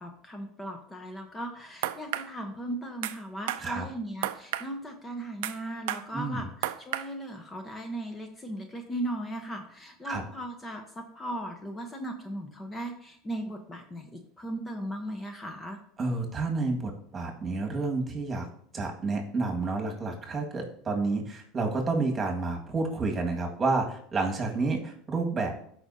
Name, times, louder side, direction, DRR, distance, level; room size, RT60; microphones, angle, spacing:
voice 1, 0.0-15.8, right 1 dB, 15° left, 4 dB, 0.9 m, -37 dB
sound 1, 1.8-2.3 3.0-3.2 3.5-3.6 4.2-4.7 5.4-5.6 5.9-6.0 6.6-7.1, right 14 dB, 80° right, 0.4 m, -31 dB
voice 2, 6.1-6.4 10.1-10.2 16.0-18.5 18.7-25.7, right 3 dB, 25° right, 2 dB, 1.8 m, -30 dB
13.0 x 5.0 x 2.8 m, 0.64 s
supercardioid pair, 115°, 0 cm